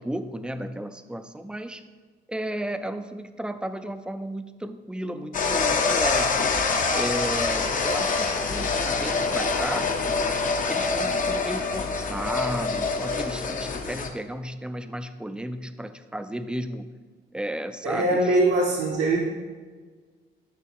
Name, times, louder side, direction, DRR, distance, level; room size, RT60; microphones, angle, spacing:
voice 1, 0.0-1.8 2.3-6.5 6.9-9.9 10.7-16.9 17.3-18.4, right 1 dB, 5° right, 9 dB, 0.4 m, -33 dB
sound 1, 5.3-14.1, left 4 dB, 40° left, 0.7 m, -25 dB
voice 2, 17.8-19.2, right 2 dB, 70° right, -2 dB, 1.1 m, -22 dB
9.2 x 3.3 x 4.7 m, 1.4 s
cardioid pair, 90°, 20 cm